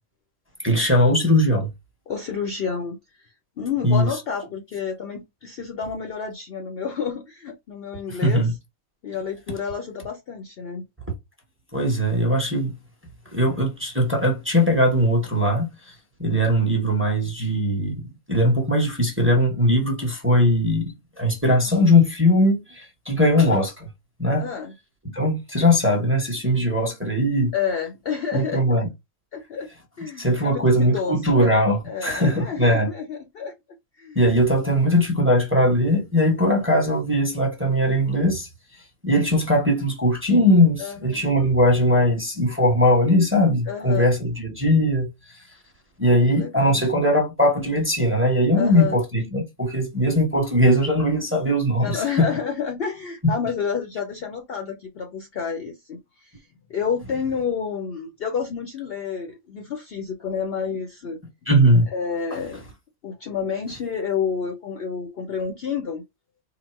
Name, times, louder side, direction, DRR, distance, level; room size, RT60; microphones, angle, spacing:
voice 1, 0.6-1.7 3.8-4.1 8.1-8.5 11.7-12.7 13.3-15.9 16.2-18.0 18.3-23.9 24.2-24.5 25.1-27.5 28.3-28.9 30.2-32.9 34.1-38.5 39.0-45.1 46.0-52.2 61.5-61.9, equal, 10° right, 0.9 m, -20 dB
voice 2, 2.1-8.4 9.0-10.8 24.4-24.7 27.5-28.6 29.3-29.7 30.0-31.5 31.8-33.5 34.0-34.8 36.5-36.6 40.8-41.2 43.7-44.2 46.0-46.8 48.5-49.0 51.8-61.2 61.9-62.7 63.0-66.0, left 6 dB, 60° left, 0.7 m, -30 dB
3.9 x 2.0 x 4.4 m
omnidirectional pair, 1.5 m